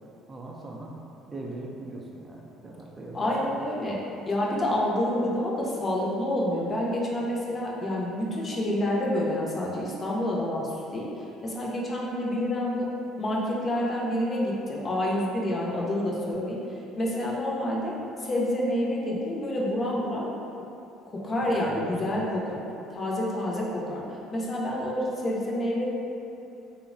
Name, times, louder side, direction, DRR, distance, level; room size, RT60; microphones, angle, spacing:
voice 1, 0.3-1.0 1.3-3.6 21.6-22.2, right 2 dB, 30° right, -2 dB, 0.4 m, -40 dB
voice 2, 3.1-4.0 4.3-11.1 11.4-12.9 13.2-16.6 17.0-20.3 21.2-22.6 22.9-24.0 24.3-25.9, left 1 dB, 35° left, -4 dB, 0.5 m, -28 dB
3.1 x 2.1 x 2.5 m, 2.8 s
supercardioid pair, 75°, 0 cm